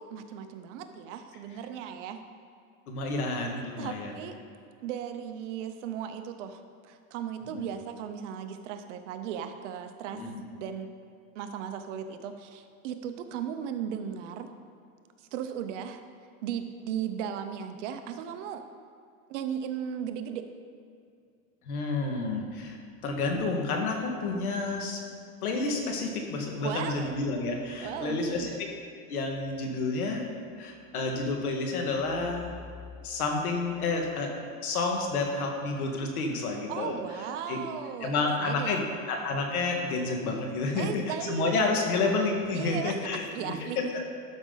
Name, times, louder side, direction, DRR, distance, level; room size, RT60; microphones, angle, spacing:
voice 1, 0.0-2.2 3.4-3.5 3.8-4.4 4.8-10.9 11.3-14.5 15.2-16.0 16.4-18.7 19.3-20.5 26.6-27.2 27.8-28.5 36.7-39.0 40.7-41.7 42.5-43.8, right 8 dB, 55° right, 8 dB, 0.8 m, -36 dB
voice 2, 2.9-4.1 7.4-7.6 10.1-10.3 21.7-22.8 23.0-25.0 25.4-28.5 29.1-30.3 30.6-32.5 33.0-34.3 34.6-37.0 37.5-37.6 38.0-38.8 39.1-44.0, left 3 dB, 80° left, 2 dB, 1.9 m, -30 dB
12.5 x 6.1 x 4.0 m, 2.4 s
supercardioid pair, 145°, 43 cm